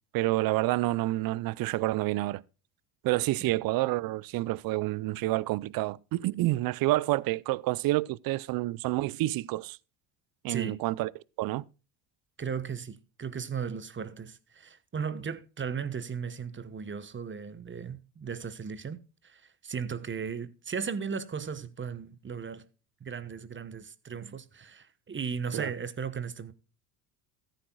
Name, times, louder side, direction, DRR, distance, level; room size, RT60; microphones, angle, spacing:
voice 1, 0.1-2.4 3.0-9.8 10.4-11.1 11.4-11.6 25.5-25.7, right 18 dB, 45° right, 0.6 m, -28 dB
voice 2, 10.5-10.8 12.4-19.0 19.2-22.6 23.0-26.5, right 6 dB, 25° right, 1.1 m, -36 dB
14.5 x 13.5 x 2.3 m
hypercardioid pair, 65°, 48 cm